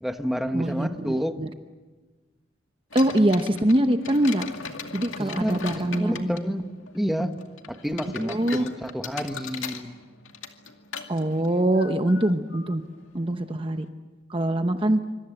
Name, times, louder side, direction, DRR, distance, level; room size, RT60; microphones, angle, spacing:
voice 1, 0.0-1.4 5.2-6.7 6.9-7.3 7.7-9.9, equal, ahead, 6 dB, 1.2 m, -29 dB
voice 2, 0.5-1.5 2.9-4.5 4.9-6.3 8.2-8.6 11.1-12.8 13.1-13.9 14.3-15.0, right 1 dB, 25° right, 7 dB, 0.9 m, -23 dB
sound 1, 2.9-13.9, left 6 dB, 90° left, 2.3 m, -40 dB
26.5 x 25.5 x 7.9 m, 1.3 s
head